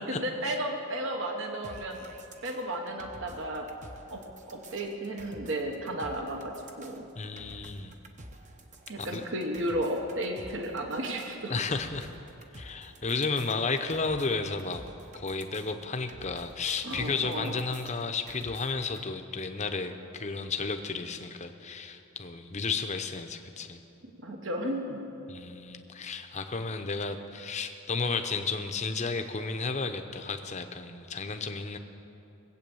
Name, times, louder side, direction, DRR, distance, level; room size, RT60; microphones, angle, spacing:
voice 1, 0.1-2.0 2.4-3.7 4.1-4.2 4.5-7.1 8.9-11.7 16.8-17.6 24.2-25.1, right 1 dB, 55° right, 3 dB, 1.1 m, -33 dB
sound 1, 1.6-19.0, right 1 dB, 35° right, 0.9 m, -50 dB
voice 2, 7.2-7.9 9.0-9.2 11.5-12.1 12.5-14.8 15.1-23.8 25.3-31.8, left 4 dB, 30° left, 7 dB, 0.7 m, -33 dB
20.5 x 8.4 x 7.0 m, 2.8 s
head